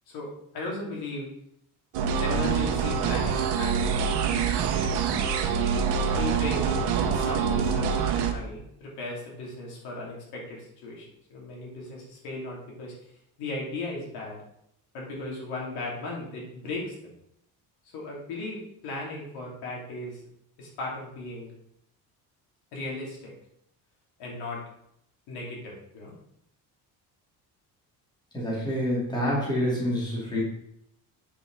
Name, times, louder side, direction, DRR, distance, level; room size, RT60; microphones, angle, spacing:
voice 1, 0.1-1.3 2.2-4.0 5.2-5.4 6.1-6.9 7.1-8.0 8.3-12.9 13.4-14.4 14.9-16.9 17.9-20.2 20.6-21.5 22.7-23.3 24.2-24.6 25.3-26.1, left 2 dB, 75° left, -3 dB, 3.1 m, -36 dB
sound 1, 1.9-8.3, right 6 dB, 85° right, 1.1 m, -25 dB
voice 2, 28.3-30.4, equal, 10° left, -5 dB, 2.5 m, -27 dB
8.5 x 6.2 x 4.0 m, 0.73 s
cardioid pair, 180°, 38 cm